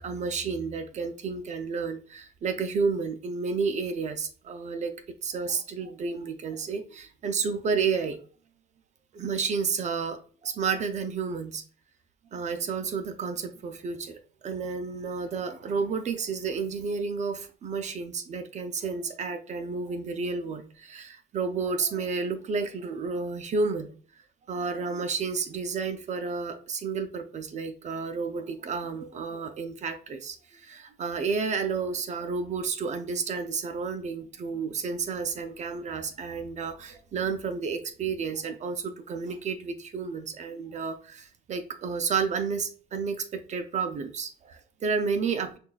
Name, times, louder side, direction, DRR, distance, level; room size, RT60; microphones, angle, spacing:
voice 1, 0.0-4.9 5.2-8.2 9.1-11.6 12.3-23.9 24.5-45.6, right 5 dB, 45° right, 8 dB, 0.6 m, -31 dB
5.7 x 2.4 x 2.3 m, 0.40 s
cardioid pair, 110°, 17 cm